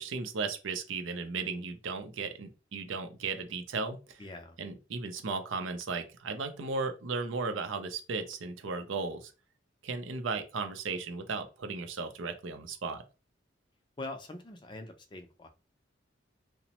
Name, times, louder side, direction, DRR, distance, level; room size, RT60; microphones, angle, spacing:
voice 1, 0.0-4.2 4.6-9.3 9.8-13.0, right 4 dB, 85° right, 7 dB, 0.5 m, -35 dB
voice 2, 4.2-4.6 14.0-15.5, left 2 dB, 25° left, 6 dB, 0.4 m, -43 dB
2.9 x 2.0 x 2.8 m, 0.32 s
head